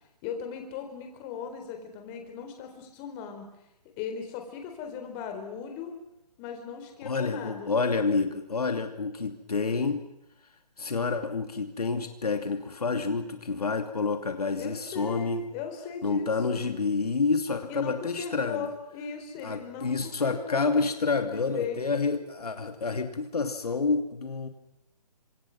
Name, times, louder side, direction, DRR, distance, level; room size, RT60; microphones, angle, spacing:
voice 1, 0.2-3.5 4.0-6.0 6.4-7.7 14.6-16.7 17.7-20.8 21.2-22.0, left 6 dB, 20° left, 5 dB, 4.4 m, -38 dB
voice 2, 7.0-10.0 10.8-15.4 16.0-18.7 19.4-24.5, left 4 dB, 70° left, 6 dB, 2.8 m, -28 dB
27.5 x 26.5 x 6.2 m, 0.86 s
figure-of-eight pair, 145°, 20 cm